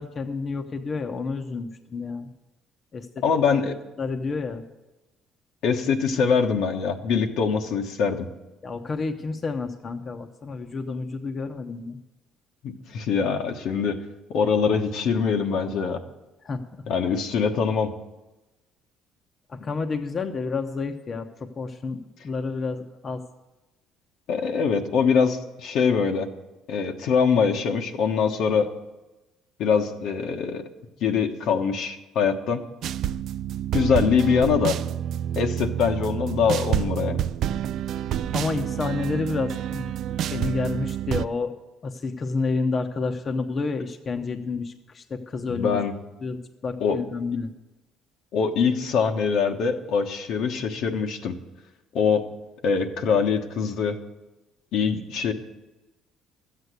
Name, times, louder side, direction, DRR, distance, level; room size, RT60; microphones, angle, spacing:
voice 1, 0.0-2.3 2.9-3.2 4.0-4.7 8.6-12.0 16.4-16.8 19.5-23.2 38.3-39.9 40.3-45.8 46.2-47.5, left 4 dB, 35° left, 5 dB, 0.9 m, -30 dB
voice 2, 3.2-3.8 5.6-8.3 12.6-14.0 14.3-16.0 16.9-17.9 24.3-26.3 26.7-28.7 29.6-30.6 31.0-32.6 33.7-34.8 35.3-37.2 45.5-45.9 46.8-47.0 48.3-51.3 51.9-52.2 52.6-54.0 54.7-55.3, left 6 dB, 70° left, 4 dB, 1.3 m, -23 dB
sound 1, 32.8-41.3, right 10 dB, 65° right, 0.3 m, -28 dB
13.0 x 8.2 x 8.1 m, 1.1 s
cardioid pair, 105°, 0 cm